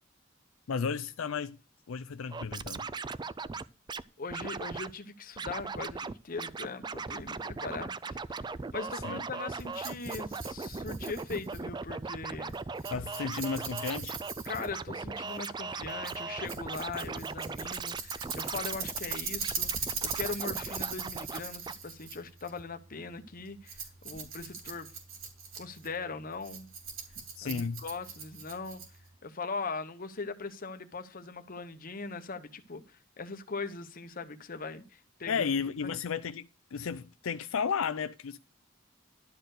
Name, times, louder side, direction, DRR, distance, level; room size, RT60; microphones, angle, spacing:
voice 1, 0.7-1.6 1.9-2.9 9.0-9.2 12.9-14.2 24.2-24.3 27.4-27.8 35.3-38.4, left 6 dB, 80° left, 0.5 m, -33 dB
Scratching (performance technique), 2.3-4.0 4.3-4.9 5.4-6.1 6.4-21.4 21.7-21.8, right 4 dB, 20° right, 0.4 m, -38 dB
voice 2, 4.2-8.5 8.7-12.5 14.4-24.9 25.6-26.7 27.4-28.8 29.2-35.5 35.8-35.9, left 4 dB, 45° left, 0.9 m, -40 dB
Rattle, 9.6-29.2, right 6 dB, 80° right, 3.4 m, -40 dB
12.0 x 4.5 x 6.5 m
head